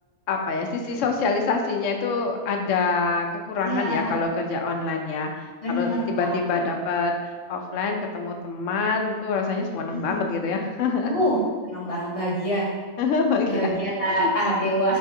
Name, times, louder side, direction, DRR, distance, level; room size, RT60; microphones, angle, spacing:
voice 1, 0.3-5.3 5.7-11.1 13.0-13.7 14.1-14.3, left 4 dB, 70° left, 3 dB, 0.9 m, -25 dB
voice 2, 3.6-4.2 5.6-6.4 9.9-10.2 11.0-11.4 11.6-12.7 13.5-15.0, equal, 30° left, -5 dB, 0.8 m, -25 dB
4.1 x 2.7 x 3.6 m, 1.5 s
omnidirectional pair, 1.4 m